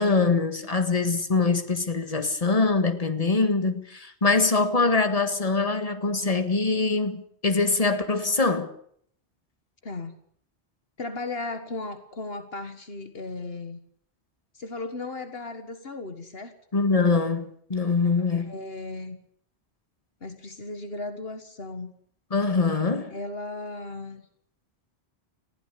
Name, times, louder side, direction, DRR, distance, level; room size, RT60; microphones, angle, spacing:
voice 1, 0.0-8.7 16.7-18.5 22.3-23.1, left 3 dB, 35° left, 1.7 m, -23 dB
voice 2, 9.8-10.2 11.0-13.8 14.5-16.5 18.0-19.2 20.2-21.9 23.1-24.2, left 3 dB, 65° left, 1.9 m, -36 dB
20.5 x 15.5 x 8.4 m
omnidirectional pair, 1.1 m